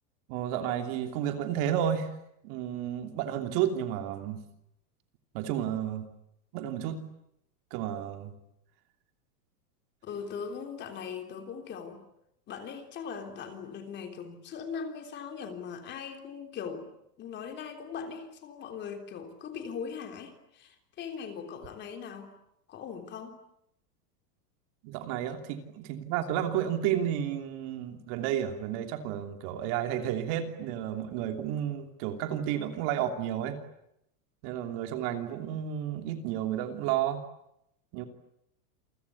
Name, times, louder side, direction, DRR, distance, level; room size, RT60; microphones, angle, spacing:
voice 1, 0.3-2.1 2.4-4.4 5.3-6.1 6.5-7.0 7.7-8.3 24.8-33.6 34.4-37.2 37.9-38.1, right 10 dB, 40° right, 6 dB, 3.0 m, -31 dB
voice 2, 10.0-12.0 12.5-16.9 17.2-22.3 22.7-23.4, left 6 dB, 25° left, 6 dB, 3.5 m, -40 dB
29.0 x 24.0 x 8.5 m, 0.79 s
supercardioid pair, 165°, 47 cm